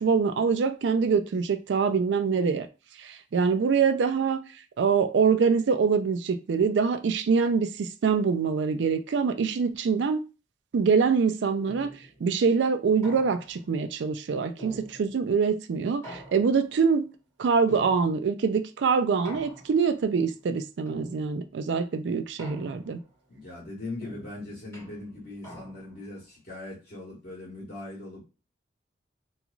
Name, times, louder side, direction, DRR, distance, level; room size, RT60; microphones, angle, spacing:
voice 1, 0.0-2.7 3.0-4.4 4.8-10.2 10.7-11.9 12.2-17.0 17.4-23.0, right 5 dB, 75° right, 0.4 m, -24 dB
sound 1, 11.7-12.2 13.0-13.7 14.6-15.3 16.0-16.8 17.7-18.4 19.2-20.0 20.9-21.5 22.4-23.1 24.0-26.0, equal, 10° left, 1.3 m, -45 dB
voice 2, 23.3-28.2, left 2 dB, 55° left, 1.4 m, -40 dB
3.0 x 2.4 x 2.4 m
head